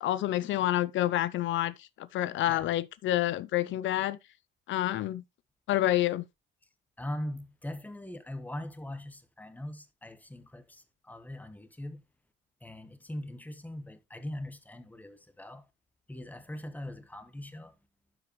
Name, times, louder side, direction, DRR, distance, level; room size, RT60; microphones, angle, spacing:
voice 1, 0.0-4.2 4.7-5.2 5.7-6.2, left 14 dB, 75° left, 0.5 m, -28 dB
voice 2, 7.0-12.0 12.6-15.7 16.1-17.8, left 1 dB, 10° left, 1.2 m, -41 dB
12.0 x 4.8 x 3.1 m
cardioid pair, 90°, 20 cm